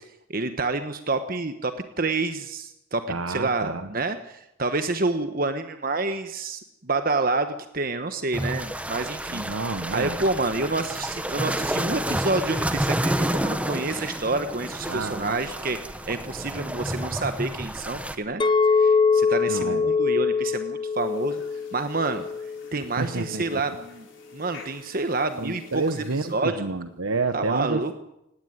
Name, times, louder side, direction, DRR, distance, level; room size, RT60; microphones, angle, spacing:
voice 1, 0.3-1.7 2.0-9.5 9.9-15.8 16.1-18.4 18.7-21.4 21.7-22.2 22.7-24.1 24.3-25.8 26.3-26.5 27.3-27.9, right 3 dB, 45° right, 9 dB, 1.2 m, -28 dB
voice 2, 3.1-3.9 9.3-10.2 14.9-15.4 19.5-19.9 23.0-23.6 25.4-27.9, right 3 dB, 85° right, 9 dB, 1.2 m, -29 dB
sound 1, 8.3-18.2, right 1 dB, 5° right, 1.1 m, -30 dB
Chink clink, 18.4-22.7 23.2-23.6, left 5 dB, 25° left, 0.8 m, -23 dB
sound 2, 20.9-26.3, left 3 dB, 65° left, 5.8 m, -50 dB
18.5 x 18.0 x 9.5 m, 0.84 s
head